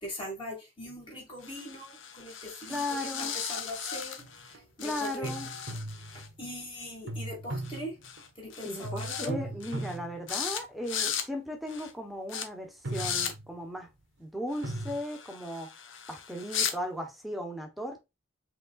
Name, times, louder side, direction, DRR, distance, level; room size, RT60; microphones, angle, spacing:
voice 1, 0.0-5.3 6.1-8.0 8.4-9.4, equal, 25° left, 2.6 m, -41 dB
sound 1, 1.4-4.5 4.8-6.3 7.6-7.8 8.0-8.3 8.5-9.3 9.6-10.0 10.3-10.6 10.9-11.3 11.7-11.9 12.3-12.5 12.9-13.3 14.5-16.8, left 8 dB, 80° left, 0.9 m, -37 dB
voice 2, 2.7-3.4 4.8-5.5 8.6-13.9 14.2-15.7 16.1-18.0, left 1 dB, ahead, 1.2 m, -36 dB
sound 2, 4.2-4.6 5.2-6.4 7.1-8.5 8.8-11.2 11.7-12.0 12.6-13.8 14.6-15.0, right 1 dB, 65° right, 1.0 m, -38 dB
5.2 x 3.7 x 2.4 m
head